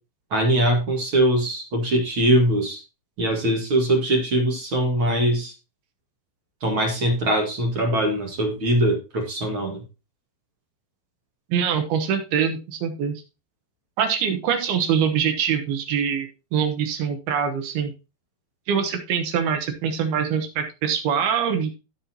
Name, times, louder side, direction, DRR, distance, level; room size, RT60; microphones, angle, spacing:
voice 1, 0.3-2.8 3.2-5.5 6.6-9.8, right 1 dB, 50° right, 1 dB, 1.6 m, -22 dB
voice 2, 11.5-13.2 14.0-17.9 18.7-21.8, right 7 dB, 70° right, 6 dB, 2.7 m, -24 dB
15.5 x 5.6 x 2.8 m, 0.30 s
omnidirectional pair, 5.2 m